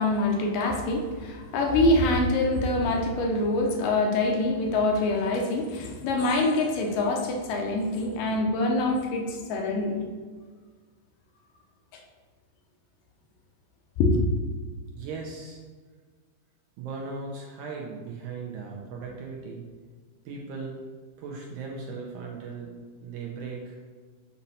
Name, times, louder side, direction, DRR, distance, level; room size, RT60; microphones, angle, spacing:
voice 1, 0.0-10.0 14.0-14.2, left 2 dB, 75° left, 1 dB, 2.3 m, -25 dB
voice 2, 14.9-15.6 16.8-19.6 20.3-20.8 21.2-22.7 23.0-23.8, right 4 dB, 75° right, -1 dB, 2.0 m, -37 dB
7.2 x 2.8 x 5.4 m, 1.5 s
omnidirectional pair, 4.0 m